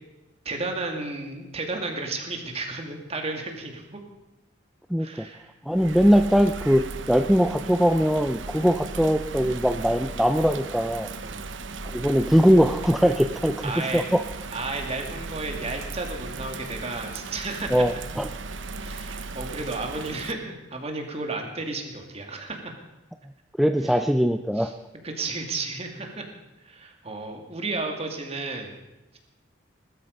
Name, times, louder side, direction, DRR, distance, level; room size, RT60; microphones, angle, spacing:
voice 1, 0.4-4.0 5.0-5.5 11.2-11.5 13.0-13.1 13.6-14.1 14.5-18.0 18.7-22.7 23.8-24.0 24.6-24.7 25.0-26.2 26.6-28.8, right 3 dB, 35° right, 3 dB, 2.5 m, -33 dB
voice 2, 4.9-5.3 5.7-11.1 11.8-14.2 17.7-18.3 23.6-24.7, equal, ahead, 7 dB, 0.5 m, -21 dB
Bird vocalization bird call bird song / Rain, 5.7-20.3, right 3 dB, 85° right, 0.9 m, -37 dB
20.5 x 13.0 x 5.3 m, 1.0 s
head